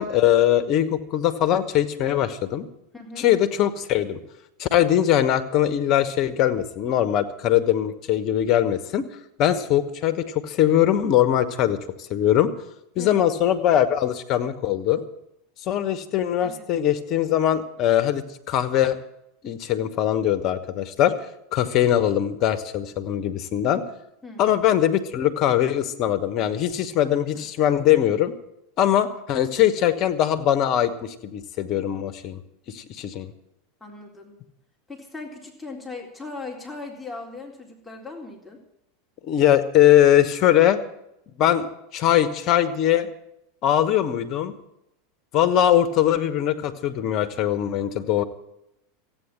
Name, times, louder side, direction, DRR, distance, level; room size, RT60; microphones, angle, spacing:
voice 1, 0.0-2.7 3.2-4.2 4.6-9.0 9.4-11.8 12.1-12.5 12.9-15.0 15.7-19.0 19.4-21.1 21.5-23.8 24.4-28.3 28.8-32.4 32.7-33.3 39.2-40.8 41.4-41.7 41.9-43.1 43.6-44.5 45.3-48.2, left 11 dB, 45° left, 11 dB, 1.5 m, -21 dB
voice 2, 2.9-3.3 13.0-13.3 16.4-16.7 24.2-24.5 27.3-27.5 33.8-34.4 34.9-38.6, left 3 dB, 5° left, -1 dB, 3.7 m, -38 dB
15.0 x 9.3 x 9.0 m, 0.81 s
hypercardioid pair, 85°, 0 cm